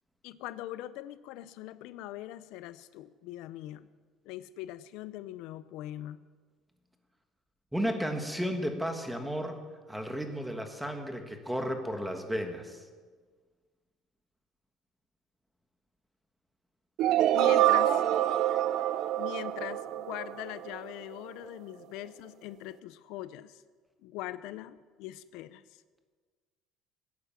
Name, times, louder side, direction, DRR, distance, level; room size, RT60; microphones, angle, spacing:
voice 1, 0.2-3.9 4.2-6.2 17.3-18.0 19.2-23.6 24.0-25.8, left 14 dB, 80° left, 15 dB, 0.5 m, -42 dB
voice 2, 7.7-9.6 9.9-12.8, equal, 5° right, 5 dB, 1.4 m, -33 dB
sound 1, 17.0-20.9, right 13 dB, 55° right, 0.5 m, -26 dB
17.0 x 9.5 x 7.3 m, 1.5 s
cardioid pair, 165°, 0 cm